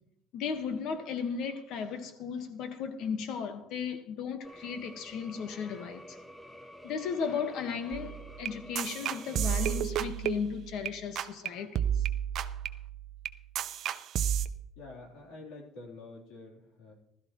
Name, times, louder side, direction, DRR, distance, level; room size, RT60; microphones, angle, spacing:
voice 1, 0.3-6.2 6.8-12.0, left 6 dB, 65° left, 1.5 m, -35 dB
sound 1, 4.4-9.8, equal, 5° left, 0.8 m, -50 dB
sound 2, 7.9-10.9 11.2-11.5 11.7-14.5, right 10 dB, 50° right, 0.6 m, -32 dB
voice 2, 14.7-16.9, left 2 dB, 80° left, 3.6 m, -48 dB
16.0 x 13.0 x 3.1 m
cardioid pair, 130°, 0 cm